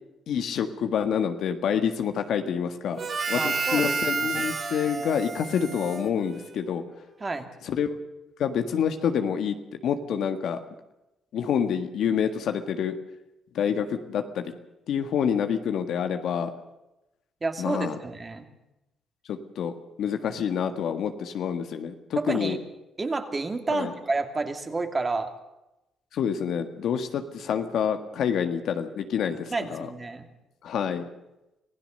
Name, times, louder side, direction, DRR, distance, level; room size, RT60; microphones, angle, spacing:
voice 1, 0.3-3.0 3.3-6.8 7.6-7.9 8.4-9.6 9.8-10.6 11.3-13.0 13.6-14.4 14.9-16.5 17.6-18.0 19.3-19.7 20.0-22.6 23.7-23.9 26.1-29.9 30.6-31.0, left 8 dB, 75° left, 7 dB, 1.6 m, -27 dB
Harmonica, 3.0-6.8, right 4 dB, 45° right, 2.3 m, -30 dB
voice 2, 3.3-4.3 7.2-7.5 17.4-18.5 22.2-22.6 23.0-25.3 29.3-30.3, right 3 dB, 25° right, 6 dB, 2.6 m, -30 dB
26.0 x 16.0 x 6.7 m, 0.93 s
cardioid pair, 90°, 0 cm